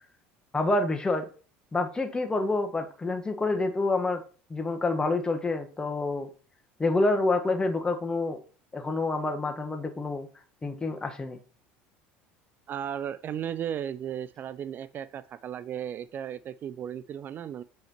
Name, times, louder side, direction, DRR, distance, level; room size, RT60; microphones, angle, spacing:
voice 1, 0.5-1.3 1.7-4.2 4.5-6.3 6.8-8.4 8.7-10.3 10.6-11.4, left 2 dB, 15° left, 5 dB, 1.2 m, -27 dB
voice 2, 12.7-17.6, right 9 dB, 45° right, 15 dB, 0.3 m, -35 dB
6.9 x 5.9 x 2.9 m, 0.39 s
hypercardioid pair, 80°, 5 cm